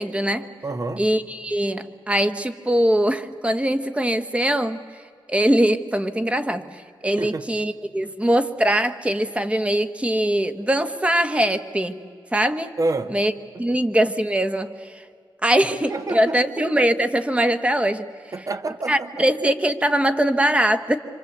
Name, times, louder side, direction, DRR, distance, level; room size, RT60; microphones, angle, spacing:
voice 1, 0.0-0.5 1.0-4.8 5.3-6.6 7.0-12.0 12.3-12.7 13.1-13.3 13.6-14.7 15.4-18.1 18.9-21.0, right 1 dB, 15° right, 1.4 m, -21 dB
voice 2, 0.6-1.0 7.2-7.5 12.8-13.1 13.7-13.8 15.9-16.6 18.3-19.2, right 2 dB, 40° right, 1.5 m, -28 dB
26.5 x 25.5 x 8.0 m
cardioid pair, 80°, 9 cm